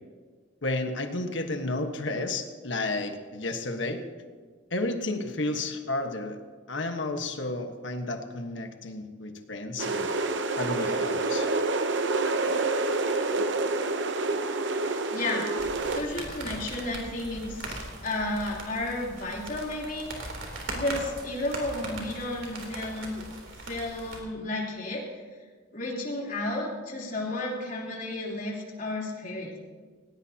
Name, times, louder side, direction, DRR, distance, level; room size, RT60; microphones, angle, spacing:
voice 1, 0.6-4.0 4.7-6.4 6.7-10.1 10.6-11.5, left 2 dB, 65° left, 5 dB, 1.4 m, -32 dB
sound 1, 9.8-16.0, right 3 dB, 65° right, 0.8 m, -27 dB
voice 2, 15.1-20.3 20.7-23.2 23.6-25.0 25.7-29.6, left 2 dB, 45° left, -3 dB, 3.4 m, -33 dB
sound 2, 15.6-24.2, right 2 dB, 80° right, 3.3 m, -40 dB
18.5 x 18.0 x 2.9 m, 1.5 s
head